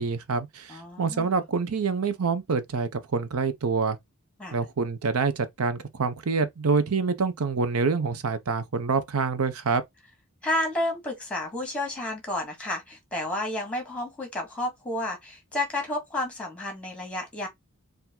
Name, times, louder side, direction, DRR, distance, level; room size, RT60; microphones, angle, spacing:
voice 1, 0.0-4.0 4.5-9.8, right 4 dB, 85° right, 0.6 m, -26 dB
voice 2, 0.7-1.4 4.4-4.6 10.4-17.5, left 1 dB, 5° left, 1.8 m, -31 dB
4.6 x 2.6 x 3.7 m
head